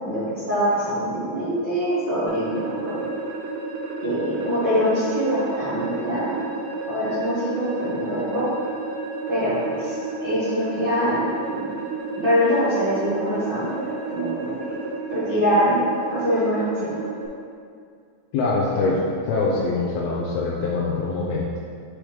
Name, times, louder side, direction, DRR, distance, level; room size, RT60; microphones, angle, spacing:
voice 1, 0.0-3.0 4.0-6.5 6.8-8.5 9.3-11.7 12.1-14.8 15.1-15.8 16.1-17.0, equal, 65° right, -14 dB, 1.1 m, -24 dB
sound 1, 2.3-17.3, right 3 dB, 85° right, 2.6 m, -32 dB
voice 2, 18.3-19.0 19.3-21.5, left 3 dB, 80° left, -4 dB, 2.4 m, -23 dB
6.1 x 4.9 x 3.4 m, 2.3 s
omnidirectional pair, 4.5 m